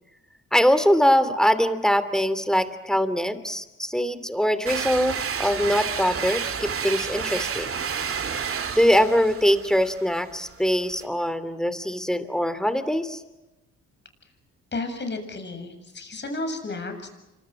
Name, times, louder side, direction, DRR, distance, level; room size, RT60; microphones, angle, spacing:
voice 1, 0.5-7.7 8.7-13.2, equal, ahead, 12 dB, 2.9 m, -22 dB
sound 1, 4.6-11.0, right 7 dB, 45° right, 2.4 m, -31 dB
voice 2, 14.7-17.1, left 2 dB, 35° left, 6 dB, 7.5 m, -32 dB
29.5 x 25.5 x 6.1 m, 0.99 s
cardioid pair, 90°, 30 cm